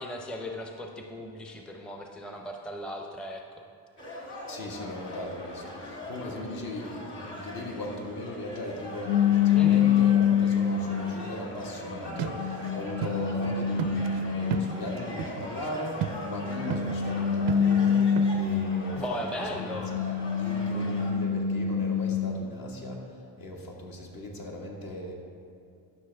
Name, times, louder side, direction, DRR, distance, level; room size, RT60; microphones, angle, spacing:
voice 1, 0.0-3.4 9.5-9.9 18.9-19.9, equal, ahead, 2 dB, 0.5 m, -37 dB
sound 1, 4.0-21.1, left 1 dB, 30° left, 1.7 m, -41 dB
voice 2, 4.5-18.0 18.3-19.8 20.4-23.0 23.4-25.1, left 1 dB, 60° left, -1 dB, 1.5 m, -38 dB
sound 2, 9.1-11.2 11.9-15.0 16.1-19.1 19.6-22.5, left 7 dB, 85° left, 0.6 m, -26 dB
sound 3, 12.2-12.7 13.0-13.1 13.4-13.5 13.8-15.7 16.0-16.4 16.7-17.1 17.5-18.7, right 10 dB, 90° right, 0.5 m, -34 dB
11.5 x 6.0 x 3.4 m, 2.6 s
cardioid pair, 110°, 39 cm